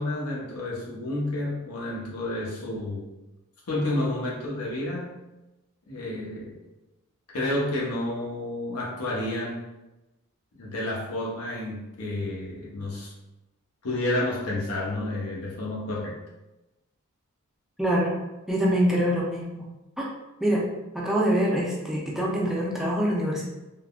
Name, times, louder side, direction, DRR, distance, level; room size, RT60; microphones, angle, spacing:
voice 1, 0.0-3.1 3.7-5.1 5.9-6.6 7.3-9.6 10.5-13.1 13.8-16.2, left 1 dB, 85° left, -4 dB, 0.8 m, -30 dB
voice 2, 17.8-18.1 18.5-19.7 20.0-20.1 20.4-20.6 20.9-23.4, equal, ahead, -5 dB, 0.4 m, -24 dB
3.4 x 2.1 x 2.3 m, 1.0 s
head